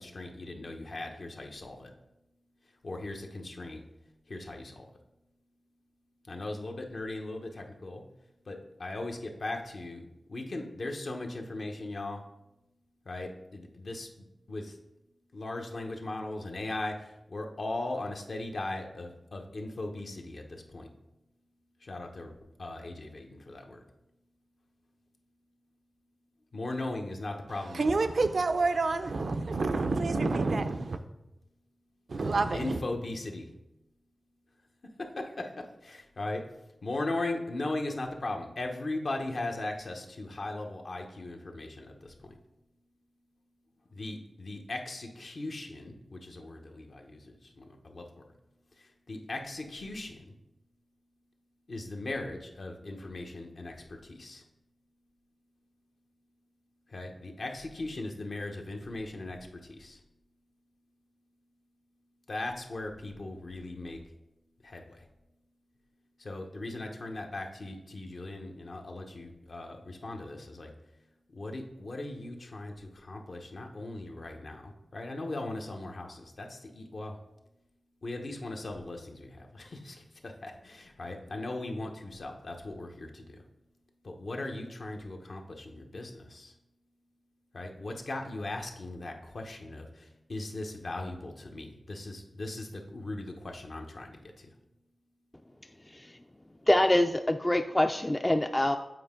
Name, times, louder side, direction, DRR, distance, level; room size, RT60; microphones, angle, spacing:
voice 1, 0.0-1.9 2.8-3.8 4.3-4.9 6.2-8.0 8.4-10.0 10.3-12.2 13.0-14.8 15.3-20.9 21.8-23.8 26.5-28.1 32.2-33.5 35.0-36.5 36.8-42.4 43.9-48.2 48.8-50.3 51.7-54.4 56.9-60.0 62.3-64.0 64.6-65.1 66.2-70.7 71.3-77.2 78.0-83.4 84.0-86.5 87.5-94.5, left 2 dB, 70° left, 0.9 m, -38 dB
voice 2, 27.7-31.0 32.1-32.8, right 3 dB, 75° right, 0.5 m, -28 dB
voice 3, 95.9-96.2 96.7-98.8, left 1 dB, 20° left, 0.4 m, -25 dB
7.7 x 4.4 x 3.7 m
cardioid pair, 45°, 0 cm